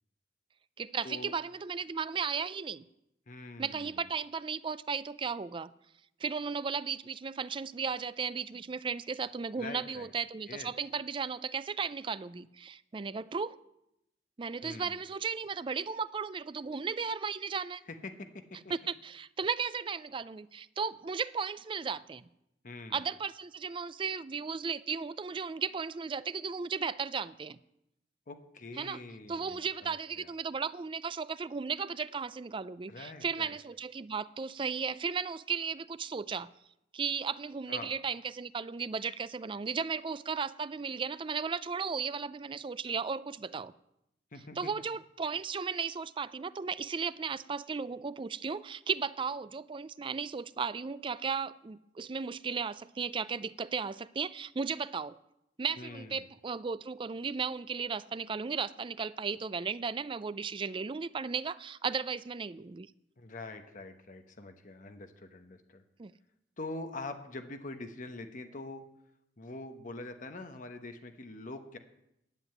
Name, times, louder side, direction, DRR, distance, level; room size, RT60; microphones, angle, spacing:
voice 1, 0.8-2.8 3.6-5.7 6.2-13.6 14.4-17.8 18.7-22.3 22.9-27.6 28.8-29.0 29.3-36.5 36.9-43.7 44.6-55.2 55.6-62.9 66.0-66.1, right 5 dB, 30° right, 0.4 m, -35 dB
voice 2, 3.3-3.9 9.6-10.1 10.5-10.7 14.6-15.0 18.0-18.4 22.6-23.0 28.3-30.3 32.9-33.6 37.7-37.9 44.3-44.6 55.8-56.2 63.2-65.8 66.6-68.8 69.4-71.8, left 2 dB, 45° left, 1.0 m, -44 dB
11.0 x 7.7 x 9.0 m
head